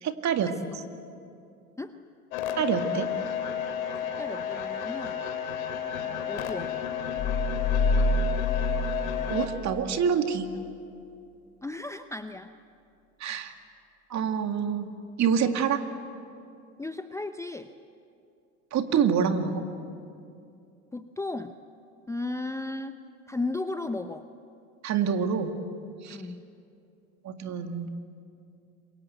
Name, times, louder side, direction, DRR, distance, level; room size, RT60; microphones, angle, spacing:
voice 1, 0.0-0.5 2.6-3.1 9.3-10.5 13.2-13.5 14.1-14.9 15.2-15.8 18.7-19.6 24.8-25.5 26.0-26.2 27.2-27.9, right 7 dB, 40° right, 7 dB, 2.2 m, -26 dB
sound 1, 2.3-9.5, left 8 dB, 75° left, 2.8 m, -32 dB
voice 2, 4.2-5.2 6.0-6.7 11.6-12.5 16.8-17.7 20.9-21.5 22.1-22.9 23.3-24.2 26.1-26.4, left 2 dB, 5° left, 9 dB, 0.7 m, -35 dB
sound 2, 7.2-10.2, left 2 dB, 40° left, 2.6 m, -27 dB
27.0 x 23.0 x 8.1 m, 2.5 s
hypercardioid pair, 85°, 43 cm